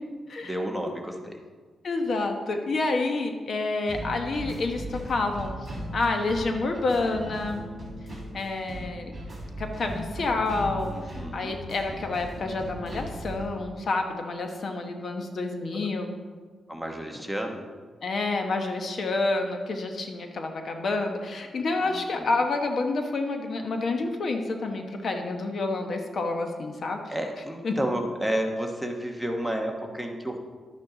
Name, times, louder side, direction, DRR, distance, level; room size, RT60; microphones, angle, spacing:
voice 1, 0.4-1.4 10.9-11.6 16.7-17.7 21.8-22.3 27.1-30.4, right 1 dB, ahead, 2 dB, 1.1 m, -31 dB
voice 2, 1.8-7.6 8.3-9.1 9.6-16.1 18.0-27.0 27.6-27.8, left 3 dB, 50° left, 4 dB, 1.0 m, -28 dB
sound 1, 3.9-13.5, right 1 dB, 15° right, 3.1 m, -38 dB
11.5 x 8.6 x 3.9 m, 1.5 s
wide cardioid pair, 130°, 0 cm